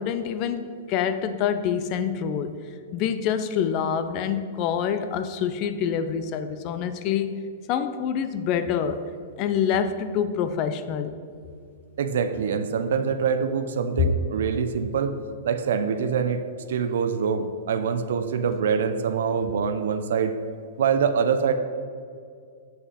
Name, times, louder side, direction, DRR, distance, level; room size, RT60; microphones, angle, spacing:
voice 1, 0.0-2.6 2.9-7.4 7.7-9.0 9.4-11.2, left 8 dB, 40° left, 11 dB, 0.4 m, -26 dB
voice 2, 12.0-15.2 15.4-16.4 16.7-20.4 20.8-21.5, right 6 dB, 75° right, 9 dB, 0.6 m, -24 dB
7.7 x 5.7 x 4.2 m, 2.3 s
hypercardioid pair, 145°, 0 cm